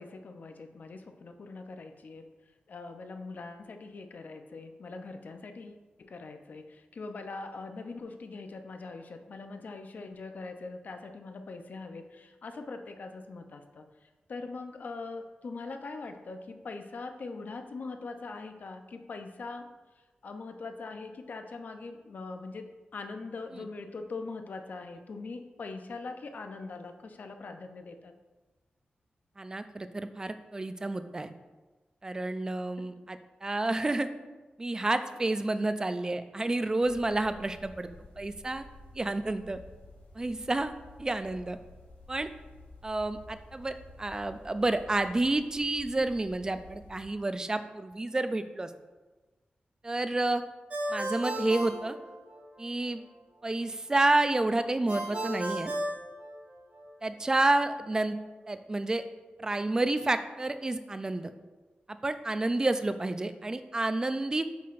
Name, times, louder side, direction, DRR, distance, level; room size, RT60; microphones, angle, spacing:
voice 1, 0.0-2.3 2.7-13.8 14.3-19.7 20.2-28.1 32.9-33.0 57.5-57.6, left 3 dB, 55° left, 6 dB, 0.5 m, -42 dB
voice 2, 29.4-31.3 32.0-34.1 34.6-37.9 38.2-38.6 38.9-39.6 40.2-40.7 41.0-41.6 42.1-42.3 42.8-48.7 49.8-50.4 50.9-52.0 52.6-53.0 53.4-55.7 57.0-58.2 58.5-59.0 59.4-61.3 62.0-64.4, right 2 dB, 20° right, 10 dB, 0.3 m, -29 dB
sound 1, 36.8-47.0, left 2 dB, 85° left, 2.1 m, -52 dB
Ringtone, 50.7-52.6 54.9-56.8, right 1 dB, 45° right, 1.5 m, -34 dB
8.4 x 5.7 x 2.5 m, 1.2 s
wide cardioid pair, 160°, 3 cm